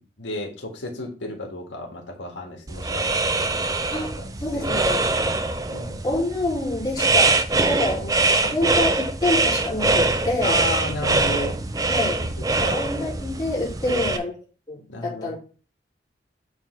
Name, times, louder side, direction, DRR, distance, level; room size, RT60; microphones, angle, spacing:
voice 1, 0.2-3.6 4.2-5.3 5.7-6.1 8.4-8.5 10.4-11.6 12.0-12.1 12.4-12.8 13.8-14.2 14.9-15.3, left 2 dB, 85° left, 0 dB, 1.7 m, -34 dB
sound 1, 2.7-14.2, right 3 dB, 20° right, 0.5 m, -23 dB
voice 2, 3.9-5.0 6.0-8.2 8.5-10.6 11.8-12.3 12.6-14.3 14.7-15.4, left 2 dB, 20° left, -5 dB, 2.6 m, -27 dB
7.2 x 3.5 x 5.6 m, 0.39 s
head